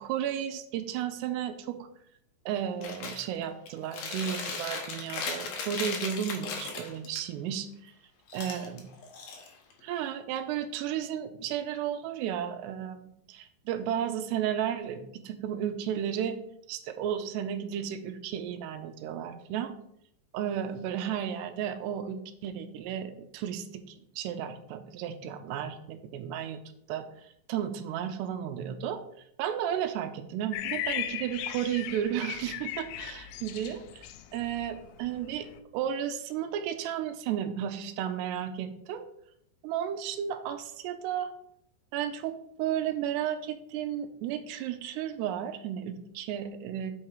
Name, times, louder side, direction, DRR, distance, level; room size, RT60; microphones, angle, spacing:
voice 1, 0.0-1.9 2.5-7.9 8.3-8.8 9.8-16.4 16.7-19.7 20.3-23.8 24.2-26.6 26.9-27.1 27.5-29.0 29.4-35.5 35.7-39.1 39.6-41.3 41.9-46.9, right 9 dB, 85° right, 8 dB, 2.8 m, -33 dB
Chewing mastication, 2.8-3.2 3.7-7.2 8.3-9.8, left 4 dB, 65° left, 1.8 m, -37 dB
sound 1, 30.5-35.6, left 12 dB, 80° left, 2.2 m, -37 dB
7.3 x 5.4 x 4.8 m, 0.73 s
omnidirectional pair, 4.7 m